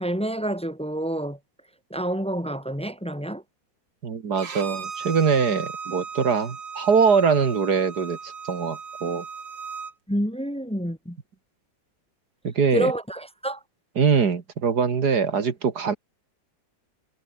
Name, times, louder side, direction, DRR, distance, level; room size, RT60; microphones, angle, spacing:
voice 1, 0.0-1.4 1.9-3.4 10.1-11.2 12.7-13.6, right 1 dB, 5° left, 0.8 m, -28 dB
voice 2, 4.0-9.2 12.4-12.9 14.0-16.0, right 5 dB, 60° right, 2.5 m, -22 dB
Bowed string instrument, 4.4-9.9, right 5 dB, 80° right, 3.2 m, -37 dB
omnidirectional pair, 2.0 m